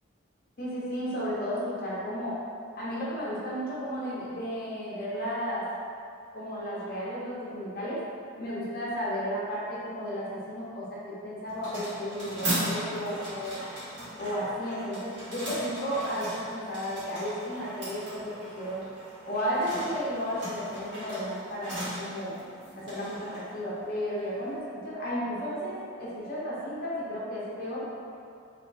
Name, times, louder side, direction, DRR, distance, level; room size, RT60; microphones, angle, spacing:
voice 1, 0.6-2.4 2.8-5.6 6.3-8.0 8.4-13.6 14.2-18.8 19.3-22.3 22.7-27.8, equal, 45° left, -7 dB, 0.7 m, -33 dB
sound 1, 11.5-24.6, right 1 dB, 55° right, 1.0 m, -38 dB
3.5 x 2.2 x 2.5 m, 2.4 s
head